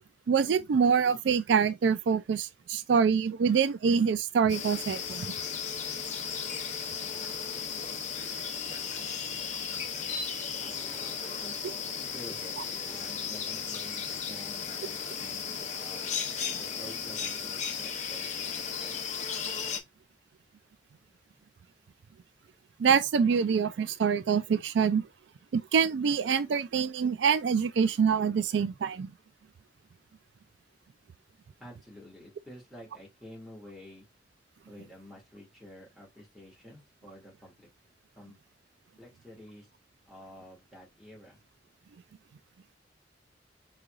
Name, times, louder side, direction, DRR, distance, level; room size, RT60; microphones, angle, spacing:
voice 1, 0.3-5.3 22.8-25.0 25.5-29.1, right 6 dB, 80° right, 0.4 m, -25 dB
sound 1, 4.5-19.8, left 7 dB, 40° left, 0.8 m, -35 dB
voice 2, 10.6-16.1 16.6-18.5 18.8-19.0 31.6-34.1 34.7-37.7 38.2-38.4 39.0-39.7 40.1-41.4, left 1 dB, ahead, 2.4 m, -50 dB
4.6 x 3.2 x 2.5 m
head